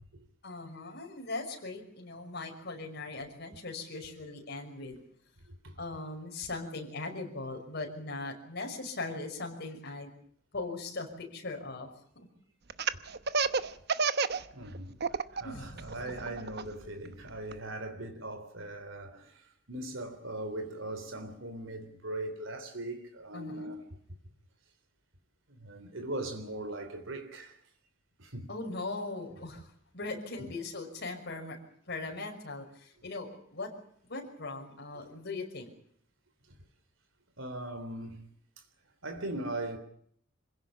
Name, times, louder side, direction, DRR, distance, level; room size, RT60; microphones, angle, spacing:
voice 1, 0.4-5.0 5.8-10.1 10.5-11.9 12.2-12.3 15.4-16.1 23.3-23.7 28.5-29.7 29.9-31.6 31.9-33.7 34.1-35.7, left 3 dB, 60° left, 5.9 m, -39 dB
voice 2, 5.5-5.8 14.5-15.0 15.3-23.8 25.5-27.6 28.2-28.5 30.4-30.5 37.4-38.3 39.0-39.8, right 1 dB, 80° right, 3.4 m, -40 dB
Laughter, 12.7-14.4 14.7-15.4 15.8-17.5, right 5 dB, 55° right, 1.0 m, -29 dB
26.5 x 16.5 x 8.7 m
head